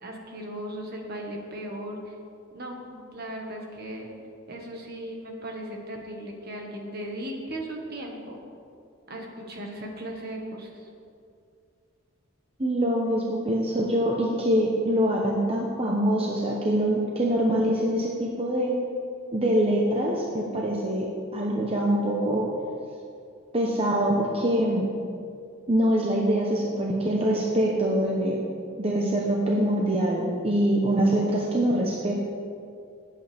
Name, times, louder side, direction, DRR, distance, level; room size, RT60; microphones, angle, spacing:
voice 1, 0.0-2.2 2.5-4.1 4.5-8.4 9.1-10.9, right 1 dB, 50° right, 1 dB, 1.7 m, -37 dB
voice 2, 12.6-18.8 19.3-21.1 21.3-22.5 23.5-24.9 25.7-28.4 28.8-32.1, right 1 dB, 30° right, -2 dB, 1.0 m, -24 dB
18.0 x 8.4 x 3.6 m, 2.4 s
head